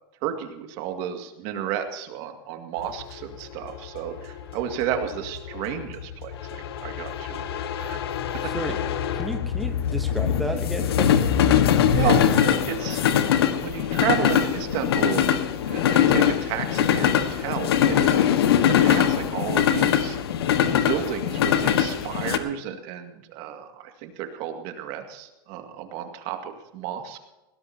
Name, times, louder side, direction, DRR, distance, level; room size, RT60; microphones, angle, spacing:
voice 1, 0.2-8.0 11.9-13.0 13.5-15.3 15.7-18.2 18.7-20.2 20.7-27.2, right 9 dB, 50° right, 5 dB, 2.2 m, -32 dB
sound 1, 2.9-22.4, left 9 dB, 85° left, 1.5 m, -22 dB
voice 2, 8.4-8.9 9.2-11.3, right 1 dB, ahead, 4 dB, 0.9 m, -32 dB
21.5 x 17.0 x 2.9 m, 1.0 s
supercardioid pair, 140°, 13 cm